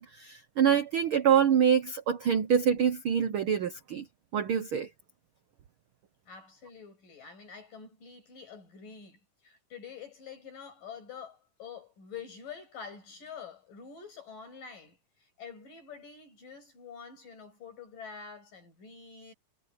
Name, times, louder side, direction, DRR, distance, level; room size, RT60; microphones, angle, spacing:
voice 1, 0.0-4.1 4.3-4.9, right 8 dB, 90° right, 1.1 m, -25 dB
voice 2, 6.3-19.3, left 6 dB, 80° left, 8.7 m, -47 dB
omnidirectional pair, 3.8 m